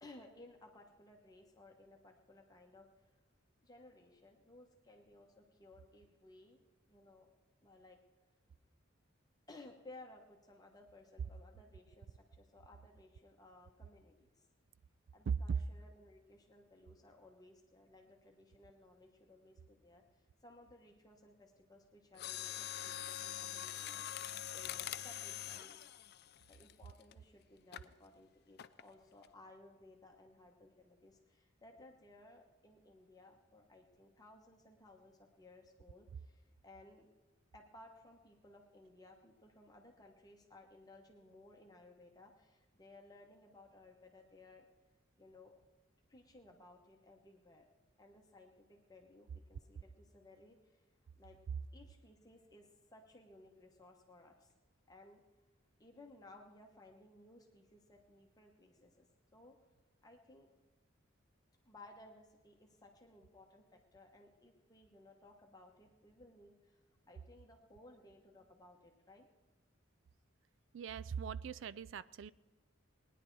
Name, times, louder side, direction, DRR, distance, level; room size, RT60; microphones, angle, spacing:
voice 1, 0.0-3.1 3.6-6.6 6.9-7.3 7.6-8.0 9.5-14.5 15.1-25.8 26.5-37.1 37.5-44.7 45.2-45.6 46.1-47.7 48.0-50.8 51.2-51.4 51.7-54.5 54.9-55.2 55.8-59.1 59.3-59.6 60.0-60.5 61.6-66.8 67.1-69.3, left 2 dB, 20° left, 1 dB, 1.1 m, -60 dB
Mechanisms, 22.1-27.1 27.7-27.9 28.6-28.9 29.2-29.3, left 11 dB, 55° left, 0.4 m, -44 dB
voice 2, 70.7-72.3, right 7 dB, 65° right, 19 dB, 0.3 m, -40 dB
19.5 x 10.0 x 4.6 m, 1.3 s
head